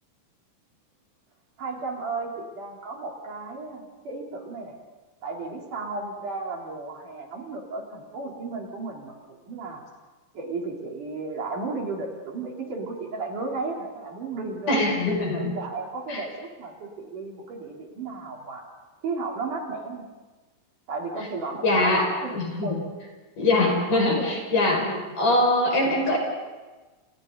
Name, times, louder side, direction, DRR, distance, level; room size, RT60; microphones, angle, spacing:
voice 1, 1.6-4.8 5.2-9.8 10.3-14.8 15.4-18.7 19.0-20.0 20.9-22.3 22.6-22.8 23.6-24.4 24.8-25.0, right 3 dB, 65° right, -1 dB, 5.1 m, -34 dB
voice 2, 14.7-15.5 16.1-16.2 21.6-22.1 22.3-22.8 23.4-24.8 25.2-26.2, left 2 dB, 65° left, 0 dB, 7.5 m, -22 dB
29.5 x 29.5 x 4.0 m, 1.2 s
omnidirectional pair, 3.9 m